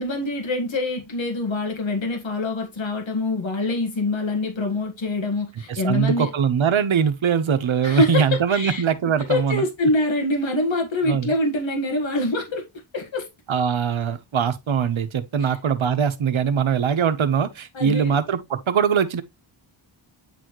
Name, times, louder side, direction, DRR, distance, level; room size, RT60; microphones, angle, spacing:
voice 1, 0.0-6.3 7.8-8.8 9.2-12.6 12.9-13.3 15.4-15.6 17.7-18.1, left 2 dB, 65° left, 1.7 m, -25 dB
voice 2, 5.7-9.6 11.0-11.3 13.5-19.2, right 7 dB, 70° right, 1.0 m, -22 dB
8.9 x 4.1 x 3.1 m
wide cardioid pair, 100°, 49 cm